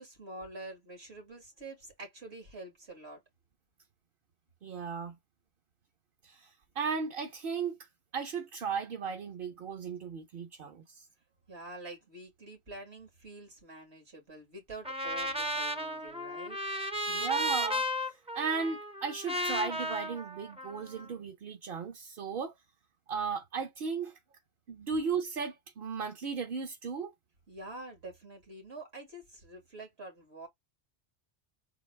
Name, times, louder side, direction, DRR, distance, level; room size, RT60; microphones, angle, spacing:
voice 1, 0.0-3.2 11.5-16.6 27.5-30.5, right 2 dB, 85° right, 2.3 m, -47 dB
voice 2, 4.6-5.2 6.2-7.9 8.1-11.1 17.1-22.5 23.1-24.1 24.7-27.1, right 5 dB, 60° right, 0.9 m, -36 dB
Trumpet, 14.8-21.1, equal, 10° right, 0.4 m, -34 dB
4.0 x 2.4 x 3.2 m
omnidirectional pair, 1.1 m